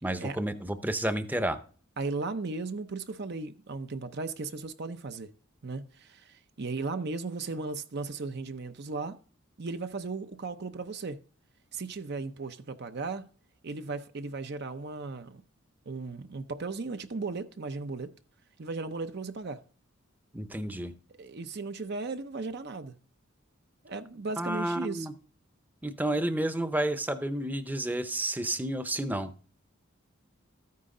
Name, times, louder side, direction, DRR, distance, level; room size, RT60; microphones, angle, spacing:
voice 1, 0.0-1.6 20.3-20.9 24.4-25.1 25.8-29.3, right 1 dB, 10° right, 0.7 m, -31 dB
voice 2, 2.0-5.3 5.6-9.2 9.6-11.2 11.7-13.3 13.6-15.4 15.9-18.1 18.6-19.6 21.2-22.9 23.8-25.1, right 3 dB, 55° right, 0.7 m, -36 dB
13.5 x 9.5 x 3.8 m
head